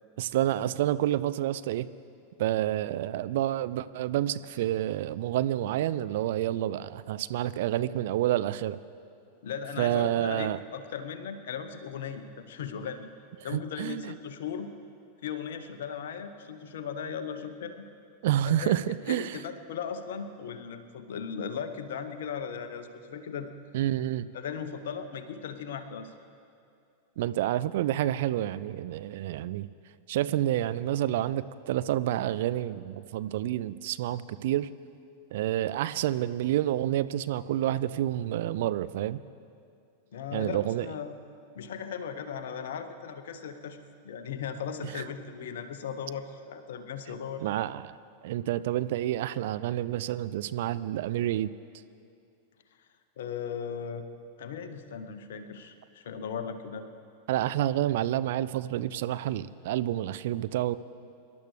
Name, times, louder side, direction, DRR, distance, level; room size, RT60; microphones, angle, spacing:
voice 1, 0.2-1.9 2.4-8.8 9.8-10.6 13.5-14.1 18.2-19.4 23.7-24.3 27.2-29.7 30.1-34.7 35.3-39.2 40.3-40.9 44.9-45.0 47.4-48.0 48.2-51.5 57.3-60.8, right 13 dB, 55° right, 15 dB, 0.3 m, -29 dB
voice 2, 9.4-13.1 13.4-14.7 15.2-17.8 18.5-18.8 19.1-23.5 24.3-26.1 40.1-41.1 41.5-43.8 44.0-47.4 53.2-54.0 54.4-56.8, left 7 dB, 60° left, 9 dB, 0.9 m, -37 dB
25.0 x 11.5 x 3.3 m, 2.4 s
figure-of-eight pair, 90°, 0 cm